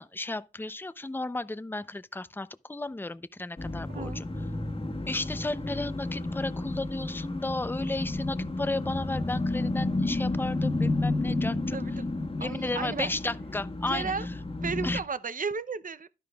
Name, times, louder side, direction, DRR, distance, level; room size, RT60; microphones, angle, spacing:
voice 1, 0.0-4.2 5.1-11.8 12.4-14.1 14.8-15.0, left 2 dB, 15° left, 0.5 m, -34 dB
sound 1, 3.6-15.0, left 2 dB, 35° left, 1.4 m, -31 dB
voice 2, 3.9-4.2 11.7-12.0 12.4-13.1 13.9-14.3 14.6-16.1, right 5 dB, 55° right, 0.6 m, -34 dB
11.5 x 10.5 x 2.3 m
cardioid pair, 50°, 17 cm